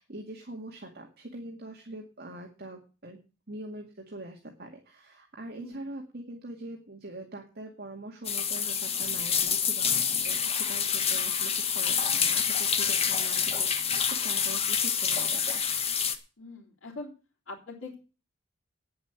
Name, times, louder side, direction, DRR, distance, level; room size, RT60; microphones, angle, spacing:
voice 1, 0.0-3.2 3.5-15.6, right 1 dB, 50° right, 1 dB, 2.1 m, -43 dB
voice 2, 5.5-5.8 16.4-17.1 17.5-18.0, left 3 dB, 65° left, -8 dB, 3.6 m, -42 dB
sound 1, 8.2-16.1, left 7 dB, 30° left, 1.1 m, -27 dB
10.0 x 7.9 x 8.1 m, 0.33 s
head